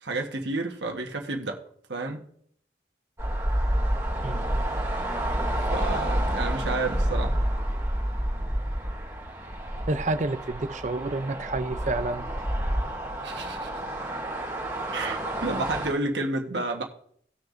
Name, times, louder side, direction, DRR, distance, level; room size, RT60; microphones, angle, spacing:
voice 1, 0.0-1.6 1.9-2.2 5.7-7.3 13.2-13.7 14.9-16.8, right 2 dB, 80° right, 1.3 m, -30 dB
sound 1, 3.2-15.9, right 1 dB, 15° right, 2.3 m, -29 dB
voice 2, 9.9-12.3, right 2 dB, 40° right, 0.5 m, -29 dB
18.5 x 6.5 x 2.5 m
head